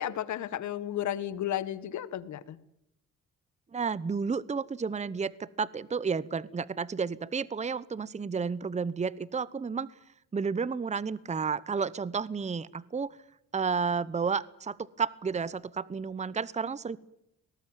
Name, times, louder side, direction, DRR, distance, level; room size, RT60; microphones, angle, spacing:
voice 1, 0.0-2.5, left 11 dB, 70° left, 15 dB, 1.7 m, -33 dB
voice 2, 3.7-9.9 10.3-13.2 13.5-17.0, right 5 dB, 25° right, 19 dB, 0.9 m, -31 dB
25.0 x 19.0 x 9.1 m, 0.80 s
cardioid pair, 90°, 30 cm